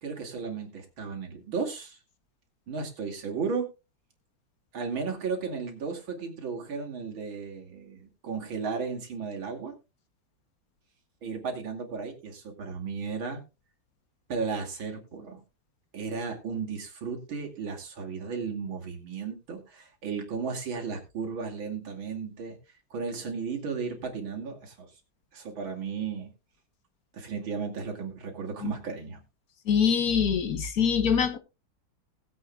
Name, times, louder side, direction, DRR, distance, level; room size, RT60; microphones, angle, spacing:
voice 1, 0.0-2.0 2.7-3.7 4.7-9.7 11.2-13.4 14.3-15.4 15.9-22.6 22.9-24.9 25.3-26.3 27.1-29.2, right 5 dB, 85° right, 3.3 m, -34 dB
voice 2, 29.7-31.4, left 7 dB, 55° left, 1.3 m, -24 dB
20.0 x 8.1 x 2.3 m
omnidirectional pair, 2.1 m